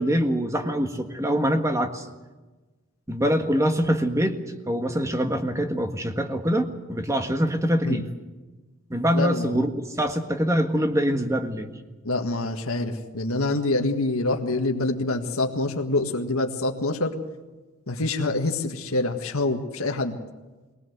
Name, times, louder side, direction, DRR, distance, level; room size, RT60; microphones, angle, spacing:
voice 1, 0.0-2.1 3.1-4.4 4.7-8.0 8.9-11.7, equal, 15° right, 6 dB, 1.6 m, -24 dB
voice 2, 9.1-9.6 12.0-17.1 17.9-20.2, left 2 dB, 75° left, 3 dB, 1.8 m, -26 dB
21.5 x 19.5 x 8.0 m, 1.2 s
head